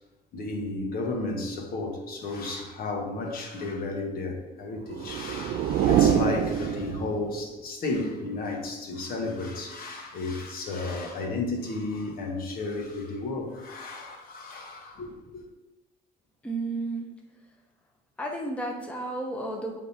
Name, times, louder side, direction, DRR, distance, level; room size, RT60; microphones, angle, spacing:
voice 1, 0.3-15.4, left 2 dB, 60° left, 1 dB, 1.4 m, -33 dB
sound 1, 4.8-7.5, right 9 dB, 70° right, 0.4 m, -25 dB
voice 2, 16.4-17.1 18.2-19.8, right 2 dB, 5° left, -1 dB, 1.0 m, -32 dB
7.4 x 3.7 x 4.3 m, 1.1 s
cardioid pair, 110°, 17 cm